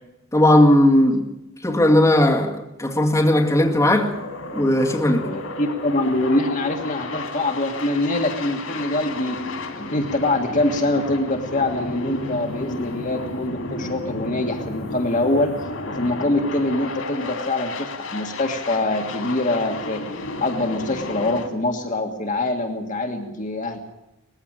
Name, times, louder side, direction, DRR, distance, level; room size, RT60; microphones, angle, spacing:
voice 1, 0.3-1.3 1.6-4.1 4.6-5.3, left 1 dB, 15° left, 2.1 m, -17 dB
sound 1, 3.1-21.5, left 2 dB, 85° left, 3.1 m, -33 dB
voice 2, 5.2-9.4 9.8-15.6 15.9-20.0 20.4-23.8, left 2 dB, 40° left, 1.7 m, -24 dB
20.0 x 15.5 x 8.9 m
head